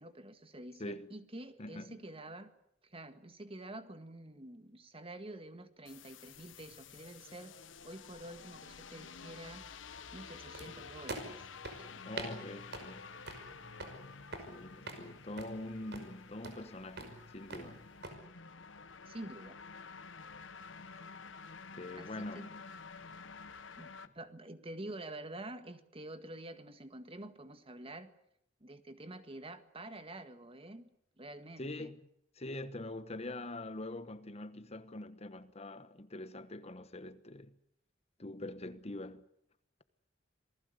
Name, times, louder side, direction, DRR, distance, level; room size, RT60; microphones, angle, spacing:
voice 1, 0.0-2.5 2.8-7.5 7.8-9.6 10.1-11.4 11.7-12.0 19.1-19.6 22.0-22.5 23.8-28.1 28.6-30.9 31.2-31.9, right 1 dB, 30° right, 1.8 m, -48 dB
voice 2, 1.6-2.0 12.1-13.1 14.5-17.8 21.7-22.6 31.6-32.0 32.4-37.5 38.2-39.3, left 2 dB, 35° left, 1.2 m, -44 dB
sound 1, 5.8-24.1, left 5 dB, 85° left, 1.3 m, -51 dB
sound 2, 10.5-18.1, right 2 dB, 60° right, 5.4 m, -47 dB
27.5 x 19.5 x 8.2 m
head